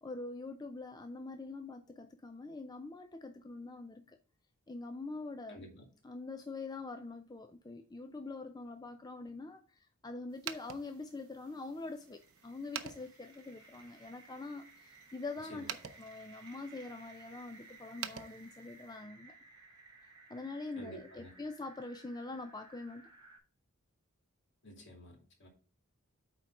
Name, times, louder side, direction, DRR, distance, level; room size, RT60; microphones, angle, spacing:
voice 1, 0.0-4.2 4.7-5.7 6.0-19.4 20.3-23.1, left 3 dB, 20° left, 0.4 m, -44 dB
voice 2, 5.5-5.8 15.5-15.7 20.8-21.3 24.6-25.5, equal, 55° left, 2.4 m, -51 dB
sound 1, 10.3-19.0, right 9 dB, 70° right, 0.7 m, -49 dB
sound 2, 11.5-23.4, right 3 dB, 20° right, 2.4 m, -58 dB
8.7 x 3.9 x 4.6 m
head